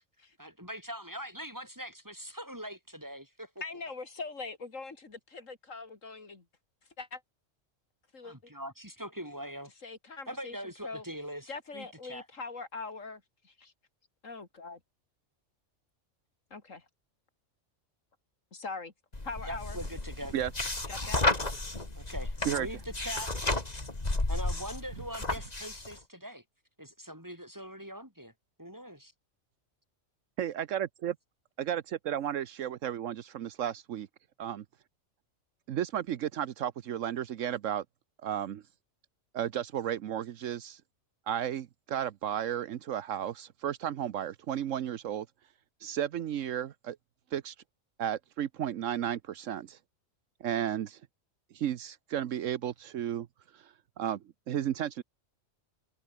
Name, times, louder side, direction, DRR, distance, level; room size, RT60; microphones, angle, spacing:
voice 1, 0.4-3.6 8.2-9.7 10.3-12.3 19.4-20.4 22.0-23.5 24.3-26.4 26.8-28.3 28.6-29.1, equal, 15° right, 7.3 m, -42 dB
voice 2, 3.6-6.4 7.0-7.2 8.1-8.5 9.8-11.0 11.5-13.7 14.2-14.8 16.5-16.8 18.5-18.9 19.2-19.8 20.9-21.2, left 4 dB, 80° left, 3.0 m, -42 dB
sound 1, 19.1-25.9, left 2 dB, 30° left, 2.8 m, -32 dB
voice 3, 30.4-31.2 31.6-34.1 34.4-34.6 35.7-37.8 38.2-38.6 39.3-40.8 41.3-45.3 45.8-47.0 47.3-47.5 48.0-49.8 50.4-51.0 51.5-53.3 53.5-55.0, right 10 dB, 75° right, 1.1 m, -33 dB
omnidirectional pair, 1.3 m